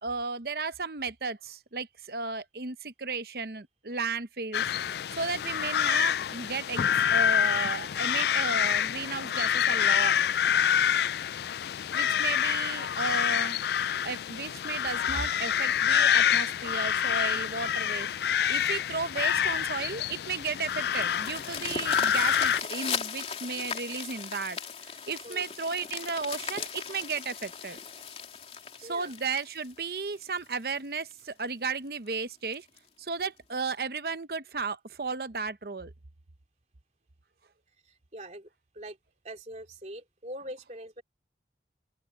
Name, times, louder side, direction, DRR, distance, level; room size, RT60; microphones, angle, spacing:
voice 1, 0.0-4.6 5.1-10.2 11.9-13.6 14.0-18.1 18.5-27.8 28.8-32.7 33.0-35.9, right 4 dB, 55° right, 0.9 m, -34 dB
sound 1, 4.5-22.6, left 9 dB, 65° left, 0.3 m, -27 dB
sound 2, 20.0-30.5 31.1-31.2 31.6-31.7 32.1-32.2 32.5-32.8 33.7-33.8, left 6 dB, 35° left, 3.1 m, -38 dB
voice 2, 28.8-29.1 37.8-38.5 38.7-39.0 39.2-41.0, right 1 dB, 40° right, 3.0 m, -43 dB
open air
head